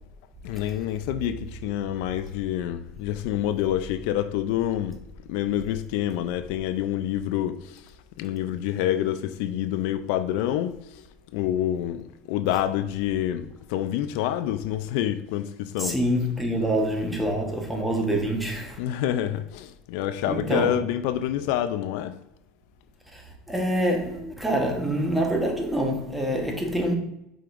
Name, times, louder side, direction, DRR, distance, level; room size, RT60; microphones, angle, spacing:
voice 1, 0.4-5.0 5.3-7.9 8.2-11.0 11.3-16.0 18.8-22.2, left 11 dB, 70° left, 0.4 m, -27 dB
voice 2, 15.8-18.8 20.3-20.7 23.1-23.2 23.5-26.9, equal, 5° right, 1.1 m, -26 dB
7.6 x 5.1 x 2.5 m
supercardioid pair, 135°, 0 cm